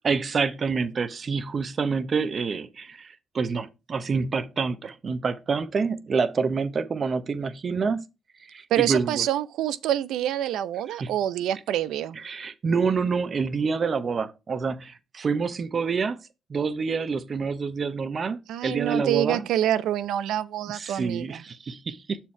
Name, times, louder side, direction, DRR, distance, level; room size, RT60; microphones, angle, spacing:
voice 1, 0.0-8.0 8.4-9.2 11.0-11.2 12.2-16.2 16.5-19.5 20.7-22.2, right 5 dB, 45° right, 0.9 m, -27 dB
voice 2, 8.7-12.2 18.5-21.4, right 12 dB, 85° right, 0.5 m, -26 dB
7.0 x 4.5 x 4.5 m
cardioid pair, 90°, 0 cm